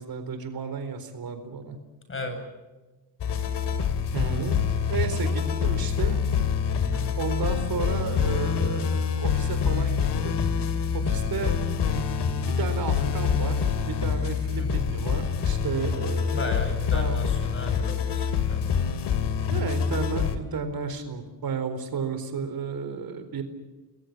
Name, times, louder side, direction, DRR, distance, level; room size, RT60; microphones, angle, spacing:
voice 1, 0.0-1.8 4.1-4.6 4.9-6.2 7.2-10.4 10.9-11.6 12.6-16.7 16.9-17.4 19.5-23.4, right 5 dB, 60° right, 9 dB, 4.2 m, -33 dB
sound 1, 3.2-20.4, left 7 dB, 75° left, 2.8 m, -26 dB
voice 2, 16.3-18.7, left 2 dB, 30° left, 6 dB, 7.7 m, -35 dB
29.5 x 21.5 x 7.4 m, 1.2 s
cardioid pair, 125°, 41 cm